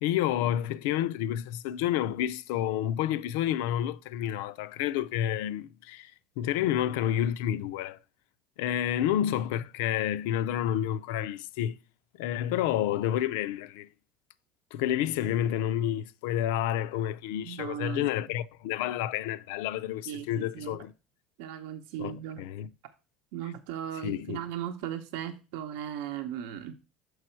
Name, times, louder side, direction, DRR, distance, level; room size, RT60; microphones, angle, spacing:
voice 1, 0.0-8.0 8.6-11.8 12.2-13.9 14.7-20.9 22.0-22.7 24.0-24.4, left 11 dB, 85° left, 0.4 m, -29 dB
voice 2, 17.4-18.2 20.1-20.8 21.4-22.4 23.3-26.7, right 10 dB, 80° right, 0.7 m, -37 dB
6.8 x 4.8 x 4.3 m
cardioid pair, 150°, 0 cm